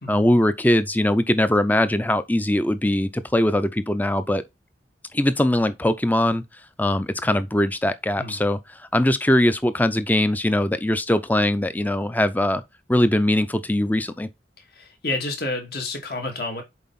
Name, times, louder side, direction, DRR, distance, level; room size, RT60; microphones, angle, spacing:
voice 1, 0.1-4.4 5.1-6.4 6.8-8.6 8.9-12.6 12.9-14.3, left 1 dB, 10° left, 0.5 m, -21 dB
voice 2, 14.7-16.6, left 2 dB, 60° left, 2.4 m, -29 dB
7.1 x 4.6 x 4.2 m
head